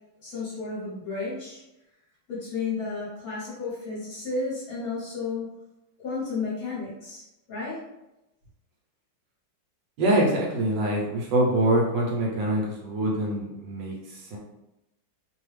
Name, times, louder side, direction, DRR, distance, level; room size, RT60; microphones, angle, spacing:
voice 1, 0.2-1.6 2.3-5.5 6.0-7.2 7.5-7.8, left 4 dB, 55° left, -7 dB, 1.2 m, -32 dB
voice 2, 10.0-14.4, right 1 dB, 70° right, -3 dB, 1.3 m, -25 dB
3.2 x 2.3 x 3.2 m, 0.93 s
omnidirectional pair, 2.2 m